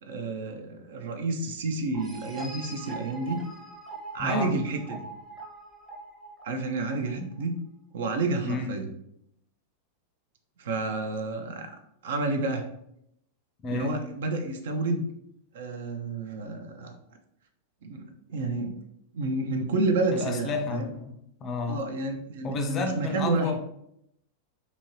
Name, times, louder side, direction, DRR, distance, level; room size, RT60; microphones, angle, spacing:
voice 1, 0.0-3.4 4.1-5.0 6.4-7.6 7.9-8.8 10.6-11.8 12.0-12.7 13.7-15.1 15.5-17.0 17.8-18.7 19.1-20.9 21.7-23.5, right 3 dB, 60° right, 5 dB, 0.4 m, -30 dB
sound 1, 1.9-7.4, right 3 dB, 5° right, 0.7 m, -42 dB
voice 2, 4.2-4.5 7.2-7.3 8.4-8.8 13.6-14.0 20.1-21.2 21.4-21.8 22.4-23.6, left 3 dB, 30° left, 6 dB, 0.4 m, -31 dB
2.8 x 2.6 x 3.0 m, 0.76 s
figure-of-eight pair, 90°, 0 cm